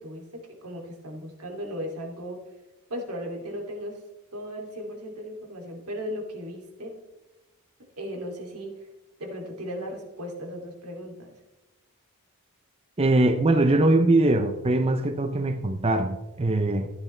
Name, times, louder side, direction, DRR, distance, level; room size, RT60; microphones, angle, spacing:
voice 1, 0.0-2.4 2.9-4.0 4.3-7.0 8.0-8.9 9.2-11.4, equal, 85° right, 1 dB, 2.7 m, -36 dB
voice 2, 13.0-16.9, right 2 dB, 25° right, 7 dB, 0.6 m, -22 dB
14.5 x 10.0 x 3.2 m, 1.0 s
head